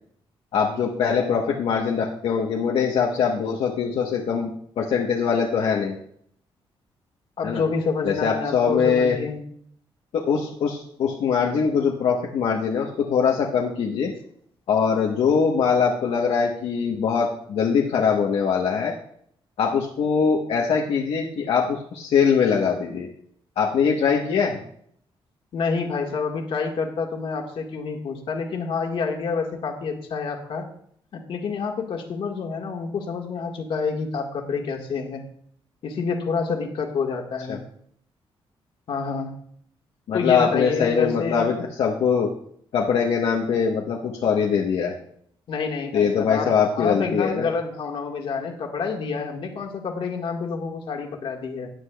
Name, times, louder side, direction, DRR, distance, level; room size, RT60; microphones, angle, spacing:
voice 1, 0.5-4.5 4.8-6.0 7.4-7.6 8.1-9.2 10.1-14.1 14.7-18.9 19.6-23.1 23.6-24.6 37.5-37.6 40.1-42.3 42.7-45.0 45.9-47.5, left 6 dB, 75° left, -2 dB, 1.1 m, -22 dB
voice 2, 7.4-9.4 25.5-30.7 31.1-35.2 35.8-37.6 38.9-39.3 40.1-41.5 45.5-51.7, left 5 dB, 60° left, 2 dB, 1.7 m, -28 dB
16.5 x 9.6 x 2.3 m, 0.65 s
wide cardioid pair, 155°, 10 cm